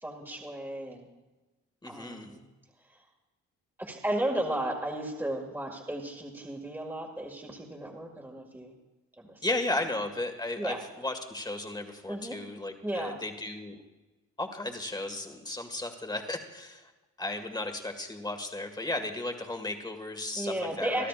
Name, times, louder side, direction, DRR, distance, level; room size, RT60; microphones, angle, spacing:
voice 1, 0.0-1.1 1.9-2.4 2.9-3.0 3.8-8.7 9.2-9.4 10.6-10.8 12.1-12.4 12.8-13.2 20.4-21.1, right 1 dB, 5° right, -1 dB, 2.0 m, -34 dB
voice 2, 1.8-2.3 9.4-13.8 14.4-16.9 17.2-21.1, left 2 dB, 15° left, 5 dB, 1.9 m, -35 dB
25.0 x 12.5 x 2.5 m, 1.1 s
cardioid pair, 90°, 30 cm